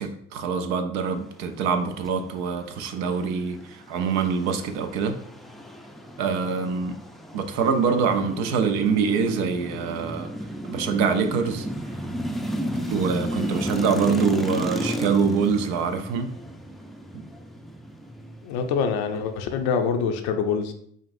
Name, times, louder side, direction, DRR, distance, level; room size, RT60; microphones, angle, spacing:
voice 1, 0.0-5.2 6.2-7.0 7.3-10.3 10.7-11.7 12.9-16.3, right 6 dB, 85° right, 7 dB, 0.5 m, -25 dB
sound 1, 3.1-19.9, equal, ahead, 0.3 m, -33 dB
voice 2, 18.4-20.7, left 6 dB, 80° left, 6 dB, 0.6 m, -25 dB
5.2 x 2.5 x 2.5 m, 0.67 s
hypercardioid pair, 55°, 38 cm